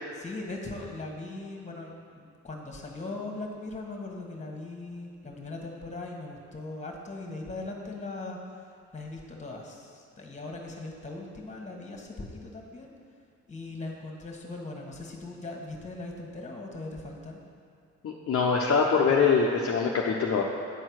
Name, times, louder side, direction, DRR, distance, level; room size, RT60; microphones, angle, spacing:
voice 1, 0.2-8.4 8.9-12.9 13.5-17.4, left 2 dB, 25° left, 0 dB, 1.6 m, -39 dB
voice 2, 18.0-20.4, left 5 dB, 50° left, -2 dB, 0.8 m, -23 dB
9.1 x 4.4 x 6.3 m, 2.3 s
cardioid pair, 90°, 30 cm